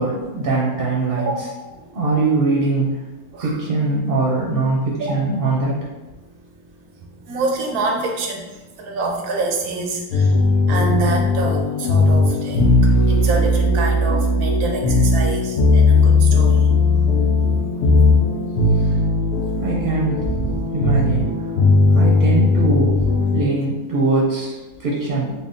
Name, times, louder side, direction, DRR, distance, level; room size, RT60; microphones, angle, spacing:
voice 1, 0.0-1.3 1.9-3.0 3.4-5.8 18.7-18.8 19.6-21.3 21.9-23.1 23.3-25.3, right 2 dB, 50° right, -4 dB, 0.7 m, -21 dB
voice 2, 1.2-1.9 3.3-3.5 5.0-5.1 7.2-16.7 18.9-19.0, right 3 dB, 90° right, 2 dB, 1.1 m, -27 dB
sound 1, 10.1-23.4, left 2 dB, 90° left, 1.2 m, -17 dB
3.5 x 2.2 x 3.8 m, 1.1 s
omnidirectional pair, 1.5 m